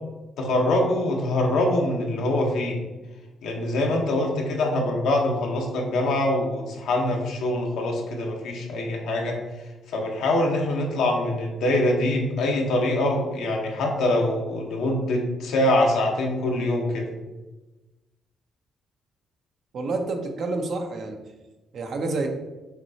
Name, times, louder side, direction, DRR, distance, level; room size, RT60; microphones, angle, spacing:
voice 1, 0.4-2.8 3.4-9.4 9.9-17.1, left 1 dB, 80° left, 0 dB, 1.0 m, -24 dB
voice 2, 19.7-21.2 21.7-22.3, right 3 dB, 60° right, 3 dB, 0.7 m, -28 dB
5.9 x 3.2 x 2.8 m, 1.1 s
cardioid pair, 90°, 0 cm